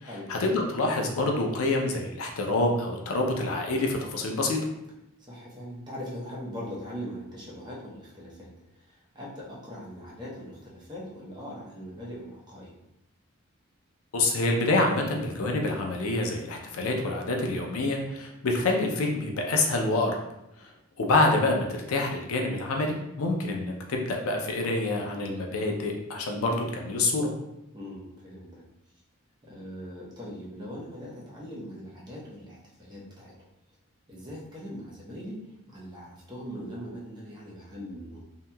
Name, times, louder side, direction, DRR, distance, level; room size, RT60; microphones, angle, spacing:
voice 1, 0.0-4.6 14.1-20.2 20.6-20.7 21.0-27.3, left 2 dB, 85° left, 1 dB, 0.5 m, -27 dB
voice 2, 5.3-8.5 8.8-12.7 27.7-28.6 29.4-33.3 34.1-38.2, equal, 20° right, -6 dB, 0.7 m, -41 dB
2.8 x 2.7 x 2.2 m, 0.86 s
head